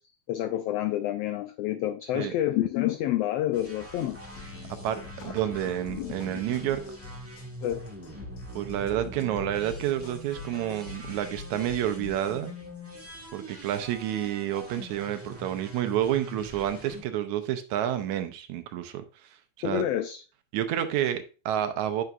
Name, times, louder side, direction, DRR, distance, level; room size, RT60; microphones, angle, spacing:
voice 1, 0.3-4.2 5.9-6.4 7.6-7.8 19.6-20.2, left 13 dB, 85° left, 1.4 m, -28 dB
sound 1, 3.5-17.0, equal, 20° right, 0.4 m, -44 dB
sound 2, 4.1-12.1, left 4 dB, 65° left, 2.2 m, -45 dB
voice 2, 4.8-6.8 8.6-12.5 13.3-19.0 19.6-19.9 20.5-22.0, right 11 dB, 80° right, 2.1 m, -29 dB
9.5 x 5.9 x 2.5 m
omnidirectional pair, 3.4 m